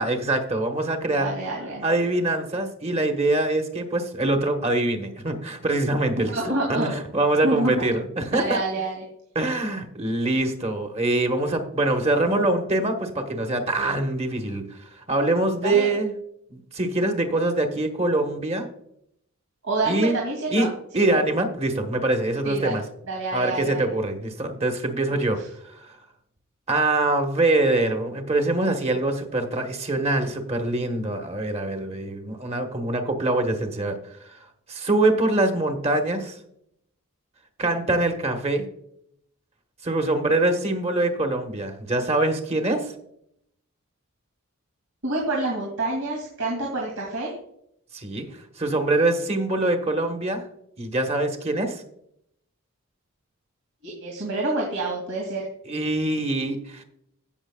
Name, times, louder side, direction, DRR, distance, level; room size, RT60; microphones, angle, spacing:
voice 1, 0.0-1.3 1.8-8.6 9.3-14.6 15.1-16.1 16.5-18.7 19.9-20.2 20.5-20.7 20.9-22.8 23.3-25.4 25.7-26.0 26.7-34.0 34.3-34.4 34.7-36.4 37.6-38.7 39.8-42.9 47.9-48.3 48.6-50.4 50.8-51.8 55.7-56.8, right 2 dB, 30° right, 4 dB, 1.3 m, -24 dB
voice 2, 1.2-1.8 6.3-6.9 7.4-7.9 8.3-9.0 15.6-15.9 19.6-20.7 20.9-21.0 22.4-22.8 23.1-23.9 25.1-25.5 45.0-47.3 53.8-55.5, right 2 dB, 90° right, -1 dB, 2.7 m, -27 dB
16.0 x 6.4 x 2.4 m, 0.70 s
head